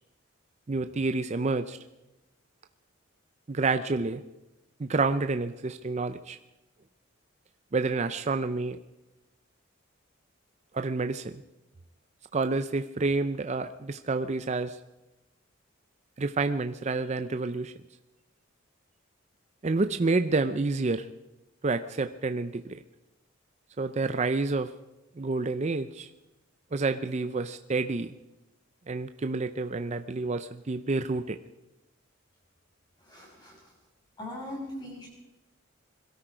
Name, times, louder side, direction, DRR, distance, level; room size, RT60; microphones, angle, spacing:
voice 1, 0.7-1.8 3.5-4.2 4.8-6.4 7.7-8.8 10.7-11.4 12.3-14.8 16.2-17.7 19.6-21.1 21.6-22.8 23.8-24.7 25.2-26.1 26.7-28.1 28.9-31.4, right 3 dB, 35° right, 9 dB, 0.5 m, -29 dB
voice 2, 33.0-33.7 34.2-35.1, left 1 dB, 20° left, -2 dB, 6.2 m, -40 dB
22.0 x 13.0 x 5.0 m, 0.98 s
head